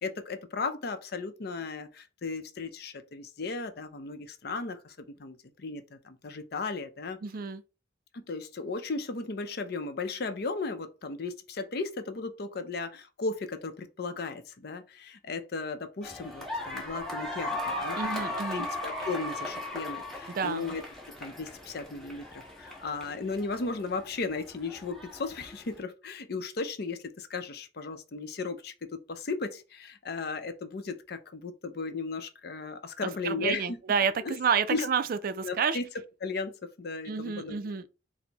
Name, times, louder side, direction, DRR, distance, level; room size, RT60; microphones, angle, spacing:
voice 1, 0.0-4.9 5.2-7.2 8.1-18.2 18.5-20.8 21.2-33.8 34.2-34.4 34.7-34.9 35.4-35.8 36.2-37.6, left 4 dB, 55° left, 0.6 m, -36 dB
voice 2, 7.2-7.6 18.0-18.7 20.3-20.7 33.0-35.8 37.1-37.9, right 6 dB, 50° right, 0.4 m, -29 dB
sound 1, 16.0-25.8, left 1 dB, ahead, 1.1 m, -38 dB
4.4 x 2.1 x 4.0 m
head